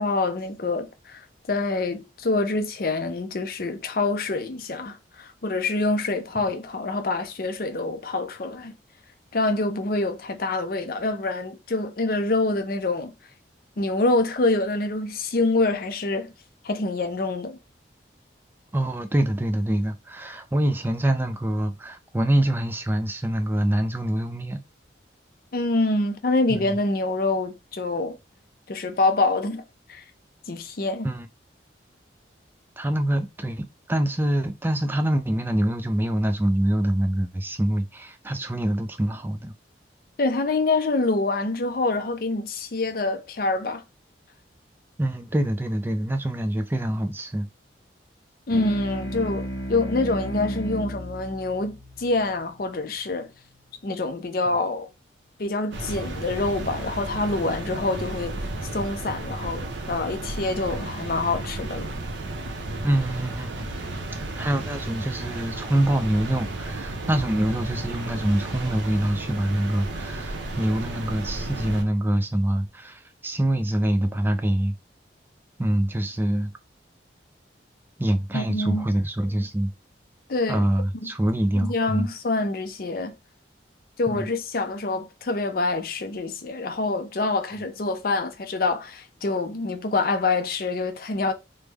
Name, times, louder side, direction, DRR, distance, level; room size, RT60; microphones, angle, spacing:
voice 1, 0.0-8.7 9.3-13.1 13.8-16.3 16.6-17.6 25.5-28.2 28.7-29.6 29.9-30.0 30.5-31.1 40.2-43.8 48.5-53.3 53.8-54.9 55.4-58.4 58.7-61.9 78.3-78.9 80.3-80.6 81.0-81.1 81.6-83.1 84.0-91.3, left 2 dB, 50° left, 0.5 m, -26 dB
voice 2, 18.7-24.6 26.5-26.8 31.0-31.3 32.8-39.5 45.0-47.5 62.8-63.7 64.1-74.7 75.6-76.5 78.0-79.7 80.5-82.1 84.1-84.3, right 1 dB, 10° right, 0.3 m, -25 dB
sound 1, 48.5-53.4, equal, 70° left, 1.3 m, -34 dB
sound 2, 55.7-71.8, right 2 dB, 80° right, 0.6 m, -33 dB
3.3 x 2.1 x 3.3 m
head